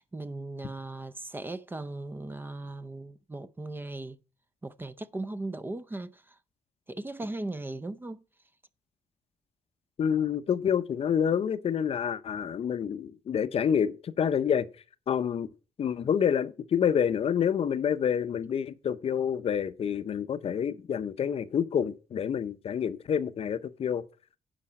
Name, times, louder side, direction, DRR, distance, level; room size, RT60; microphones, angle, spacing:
voice 1, 0.0-4.2 4.6-6.4 6.9-8.2, right 2 dB, 15° right, 0.5 m, -38 dB
voice 2, 10.0-14.7 15.1-15.5 15.8-24.0, left 8 dB, 50° left, 0.6 m, -28 dB
10.0 x 5.0 x 7.4 m
cardioid pair, 125°, 13 cm